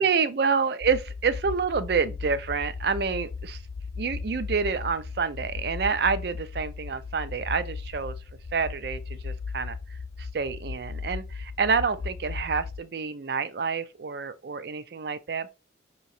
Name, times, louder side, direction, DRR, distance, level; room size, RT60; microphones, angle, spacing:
voice 1, 0.0-3.6 4.0-8.1 8.5-15.5, right 5 dB, 55° right, 0.4 m, -28 dB
sound 1, 0.8-12.8, left 4 dB, 45° left, 0.3 m, -37 dB
5.6 x 2.9 x 2.6 m
head